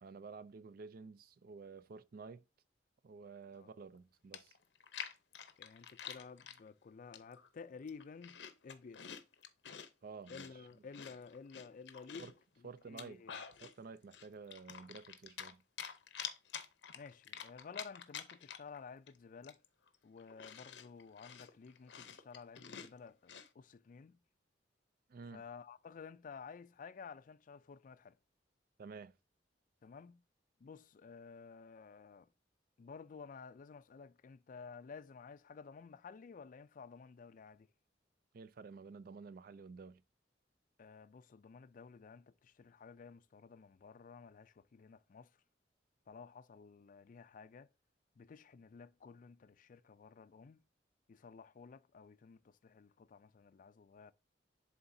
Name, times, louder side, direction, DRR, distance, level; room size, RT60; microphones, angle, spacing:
voice 1, 0.0-2.4 3.0-4.5 10.0-10.7 12.2-12.3 12.6-13.2 13.6-15.6 25.1-25.4 28.8-29.1 38.3-40.0, right 4 dB, 55° right, 0.4 m, -51 dB
Chewing mastication, 3.9-4.0 4.3-6.6 7.1-7.5 7.8-9.9 10.3-12.4 12.8-13.7 14.1-15.5 15.8-18.8 19.1-19.2 19.4-23.5, left 8 dB, 85° left, 0.7 m, -48 dB
voice 2, 5.6-9.1 10.3-13.4 16.9-19.6 20.0-24.2 25.3-28.2 29.8-30.2 30.6-32.3 32.8-37.7 40.8-45.3 46.1-47.7 48.2-50.6 51.1-54.1, left 5 dB, 50° left, 0.4 m, -53 dB
11.0 x 3.8 x 2.7 m
head